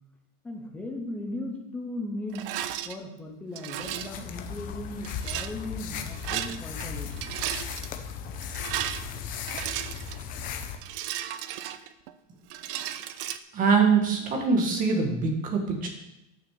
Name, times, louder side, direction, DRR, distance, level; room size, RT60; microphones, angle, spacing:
voice 1, 0.4-2.5 2.9-7.3, left 1 dB, 5° left, 1 dB, 0.3 m, -37 dB
Rattle, 2.3-2.9 3.6-4.2 5.0-5.5 6.1-6.9 7.1-7.9 8.4-10.2 10.8-12.1 12.5-13.4, right 12 dB, 50° right, 0.7 m, -34 dB
sound 1, 3.8-10.8, left 7 dB, 20° left, 0.7 m, -37 dB
voice 2, 13.5-15.9, right 5 dB, 20° right, 2 dB, 1.8 m, -23 dB
9.7 x 6.2 x 6.7 m, 0.90 s
supercardioid pair, 170°, 37 cm